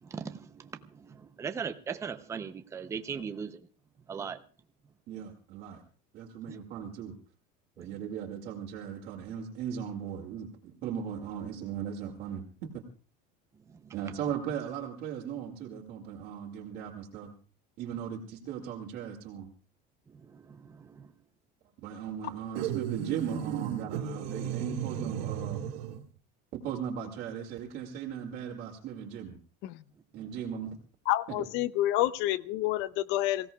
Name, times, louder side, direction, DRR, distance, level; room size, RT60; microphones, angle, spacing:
voice 1, 0.0-3.7 4.1-4.4 6.5-6.6 7.8-7.9 13.7-13.9 20.1-21.1 30.2-30.3, right 6 dB, 15° right, 0.6 m, -39 dB
voice 2, 5.1-5.8 6.1-7.2 7.8-12.4 12.7-12.8 13.9-17.3 17.8-19.5 21.8-25.6 26.5-29.4 30.1-30.8 31.3-31.4, right 8 dB, 45° right, 2.3 m, -37 dB
sound 1, 22.6-26.1, right 9 dB, 75° right, 1.3 m, -35 dB
voice 3, 31.1-33.5, left 15 dB, 60° left, 0.7 m, -28 dB
27.5 x 16.5 x 2.3 m
cardioid pair, 160°, 21 cm